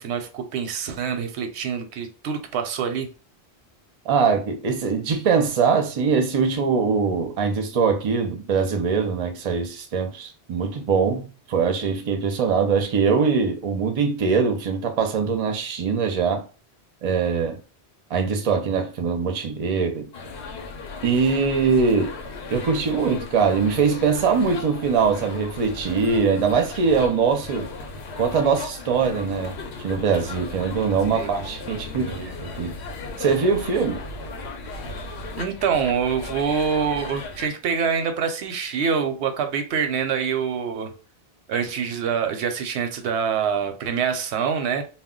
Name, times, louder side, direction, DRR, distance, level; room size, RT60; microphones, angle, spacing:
voice 1, 0.0-3.1 31.1-31.7 32.0-32.3 35.4-40.9 41.5-44.8, right 6 dB, 90° right, 0.8 m, -25 dB
voice 2, 4.1-16.4 17.0-17.6 18.1-20.1 21.0-22.1 22.5-27.7 28.2-32.8 33.2-34.0, right 5 dB, 45° right, 0.5 m, -22 dB
sound 1, 20.1-37.5, left 3 dB, 85° left, 0.9 m, -36 dB
2.2 x 2.1 x 3.6 m
omnidirectional pair, 1.1 m